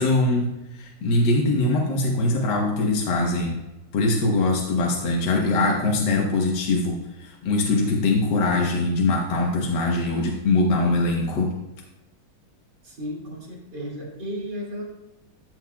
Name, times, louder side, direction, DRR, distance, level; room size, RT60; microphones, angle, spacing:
voice 1, 0.0-3.6 3.9-11.5, left 2 dB, 70° left, -1 dB, 1.7 m, -22 dB
voice 2, 12.8-14.8, equal, 65° right, -4 dB, 3.3 m, -34 dB
13.5 x 7.8 x 2.3 m, 0.97 s
omnidirectional pair, 2.0 m